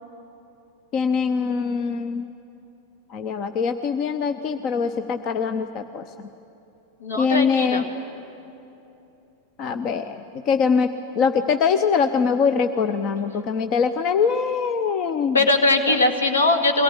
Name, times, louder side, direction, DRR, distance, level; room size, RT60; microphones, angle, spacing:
voice 1, 0.9-2.3 3.1-6.1 7.2-7.9 9.6-10.9 11.2-15.4, left 6 dB, 40° left, 9 dB, 0.8 m, -23 dB
voice 2, 7.0-7.8 15.3-16.8, left 2 dB, 70° left, 5 dB, 1.9 m, -20 dB
23.0 x 18.5 x 10.0 m, 2.8 s
figure-of-eight pair, 90°, 0 cm